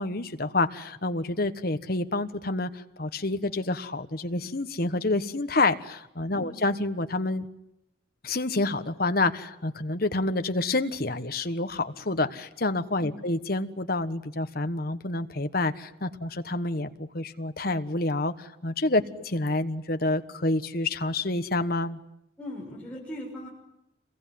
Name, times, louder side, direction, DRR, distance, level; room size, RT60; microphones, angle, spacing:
voice 1, 0.0-7.5 8.2-22.0, left 2 dB, 50° left, 9 dB, 1.4 m, -28 dB
voice 2, 22.4-23.5, left 1 dB, 5° left, -5 dB, 6.3 m, -40 dB
28.0 x 22.0 x 9.5 m, 0.84 s
head